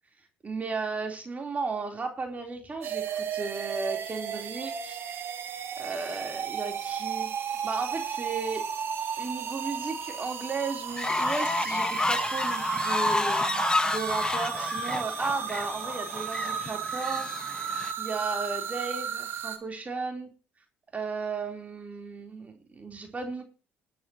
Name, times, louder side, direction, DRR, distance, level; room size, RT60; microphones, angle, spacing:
voice 1, 0.4-5.0 5.8-7.3 7.6-8.7 9.2-17.3 18.0-20.3 20.9-23.4, right 4 dB, 30° right, 3 dB, 3.8 m, -35 dB
sound 1, 2.8-19.6, right 7 dB, 55° right, 2.5 m, -34 dB
Fowl, 10.9-17.9, left 2 dB, 15° left, 1.1 m, -30 dB
21.0 x 10.0 x 3.0 m, 0.34 s
supercardioid pair, 75°, 5 cm